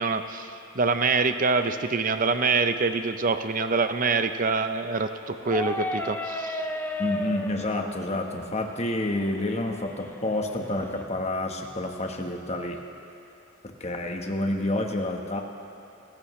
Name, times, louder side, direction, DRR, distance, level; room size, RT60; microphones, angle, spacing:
voice 1, 0.0-6.6, right 4 dB, 40° right, 9 dB, 0.7 m, -25 dB
sound 1, 5.4-11.0, left 2 dB, 10° left, 0.7 m, -35 dB
voice 2, 7.0-12.8 13.8-15.4, left 1 dB, 30° left, 3 dB, 1.2 m, -29 dB
26.5 x 14.5 x 3.2 m, 2.9 s
head